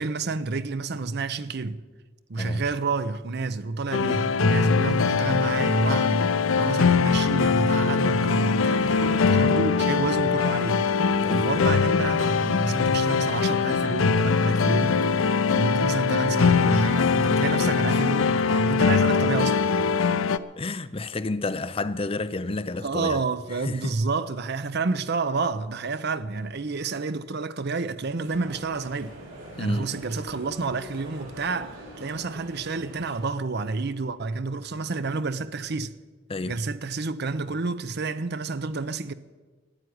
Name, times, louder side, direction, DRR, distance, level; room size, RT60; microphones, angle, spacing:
voice 1, 0.0-1.8 2.3-10.9 11.3-19.6 22.8-29.1 29.6-35.9 36.5-39.1, right 3 dB, 55° right, 0.7 m, -29 dB
sound 1, 3.9-20.4, left 5 dB, 85° left, 0.6 m, -22 dB
voice 2, 20.6-23.2 23.6-23.9 29.6-29.9 36.3-36.6, left 3 dB, 30° left, 0.5 m, -30 dB
sound 2, 28.2-33.2, right 1 dB, 80° right, 7.0 m, -43 dB
14.0 x 9.8 x 9.3 m
head